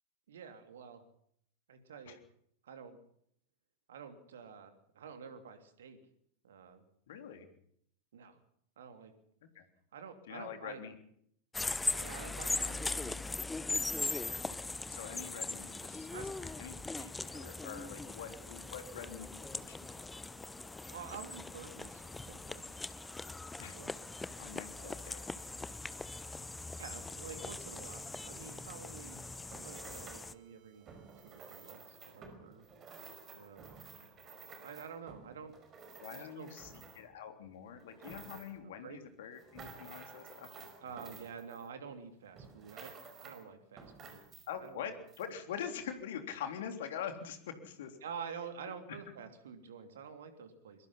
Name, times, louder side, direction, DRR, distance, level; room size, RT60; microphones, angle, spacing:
voice 1, 0.3-1.0 1.7-2.2 2.6-3.0 3.9-6.0 6.4-6.8 8.1-8.4 8.8-9.1 9.9-10.8 11.9-13.2 13.8-14.6 16.1-16.3 20.9-22.0 22.3-22.7 23.7-23.9 24.8-24.9 26.7-29.2 29.6-30.9 31.2-32.7 33.3-33.7 34.6-35.5 36.1-36.5 38.6-39.0 40.8-42.9 43.2-44.2 44.6-44.9 48.0-50.9, right 6 dB, 60° right, 8 dB, 3.1 m, -48 dB
voice 2, 7.1-7.5 9.5-9.6 10.3-10.9 14.9-19.9 23.6-23.8 24.4-25.2 36.0-40.7 44.5-48.0 48.7-49.0, left 8 dB, 55° left, 7 dB, 3.4 m, -45 dB
sound 1, 11.5-30.3, left 3 dB, 10° left, 0.9 m, -40 dB
sound 2, 13.9-31.8, right 19 dB, 45° right, 2.4 m, -64 dB
sound 3, 28.9-30.3 30.8-37.2 37.7-38.7 39.2-42.0 42.4-43.5 43.8-44.7 45.1-45.2, right 5 dB, 25° right, 5.3 m, -53 dB
23.0 x 22.5 x 5.7 m, 0.69 s
figure-of-eight pair, 90°, 0 cm